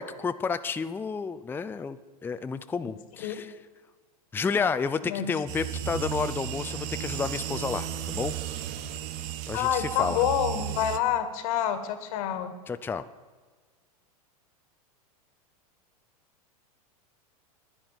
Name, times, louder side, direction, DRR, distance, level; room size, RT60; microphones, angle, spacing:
voice 1, 0.0-3.5 4.3-8.3 9.5-10.2 12.7-13.0, left 5 dB, 10° left, 11 dB, 0.5 m, -31 dB
sound 1, 5.5-11.0, right 10 dB, 50° right, 1.0 m, -34 dB
voice 2, 9.5-12.5, left 9 dB, 60° left, 10 dB, 1.8 m, -27 dB
11.0 x 10.0 x 9.0 m, 1.4 s
hypercardioid pair, 100°, 19 cm